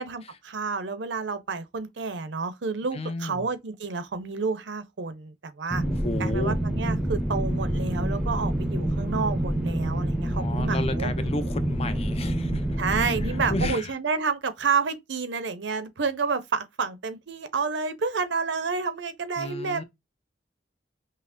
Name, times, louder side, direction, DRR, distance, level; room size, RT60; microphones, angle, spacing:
voice 1, 0.0-5.8 6.2-11.1 12.8-19.8, right 4 dB, 80° right, 0.7 m, -29 dB
voice 2, 2.9-3.5 5.9-6.6 10.2-12.7 13.2-13.9 19.4-19.8, left 2 dB, 35° left, 0.5 m, -32 dB
sound 1, 5.7-13.7, right 1 dB, 5° right, 0.6 m, -27 dB
5.6 x 2.0 x 2.5 m
head